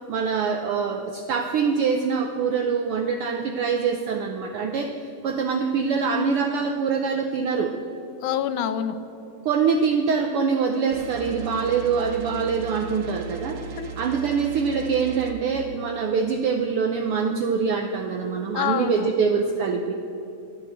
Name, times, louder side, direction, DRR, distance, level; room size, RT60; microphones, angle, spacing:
voice 1, 0.1-4.9 5.2-7.7 9.4-13.6 14.0-19.9, right 5 dB, 80° right, 5 dB, 1.2 m, -24 dB
voice 2, 8.2-9.0 13.8-13.9 18.6-19.1, left 10 dB, 85° left, 11 dB, 2.2 m, -26 dB
sound 1, 10.9-15.3, right 7 dB, 60° right, 1.9 m, -37 dB
13.0 x 8.8 x 7.9 m, 2.9 s
omnidirectional pair, 3.4 m